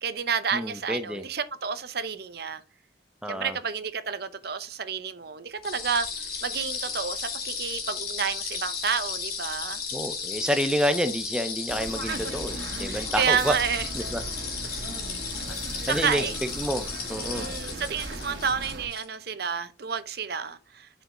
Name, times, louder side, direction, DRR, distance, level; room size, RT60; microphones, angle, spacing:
voice 1, 0.0-2.6 3.3-6.1 6.4-9.8 12.1-12.2 12.8-13.9 15.8-16.4 17.2-21.0, right 6 dB, 55° right, 0.7 m, -30 dB
voice 2, 0.5-1.2 3.2-3.6 9.9-13.6 13.9-14.2 15.5-15.6 15.9-16.2 16.6-17.5, equal, 5° right, 0.6 m, -29 dB
sound 1, 5.6-19.0, left 5 dB, 50° left, 2.5 m, -35 dB
sound 2, 11.7-18.9, right 2 dB, 80° right, 1.9 m, -38 dB
7.8 x 5.2 x 3.8 m
head